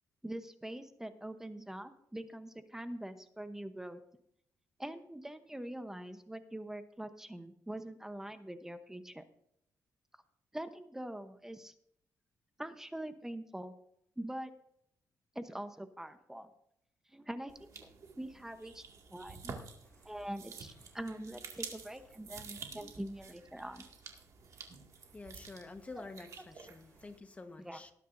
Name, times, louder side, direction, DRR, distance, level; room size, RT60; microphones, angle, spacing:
voice 1, 0.2-4.0 4.8-9.3 10.5-11.7 12.6-13.7 14.2-14.5 15.3-16.5 17.1-17.9 18.2-18.8 19.1-19.5 20.0-23.9 26.0-26.1 27.6-27.8, right 1 dB, 5° right, 9 dB, 0.9 m, -44 dB
sound 1, 17.5-27.2, right 5 dB, 55° right, 2.1 m, -50 dB
voice 2, 25.0-27.9, left 3 dB, 20° left, 7 dB, 1.2 m, -49 dB
19.0 x 10.0 x 2.6 m, 0.71 s
cardioid pair, 120°, 6 cm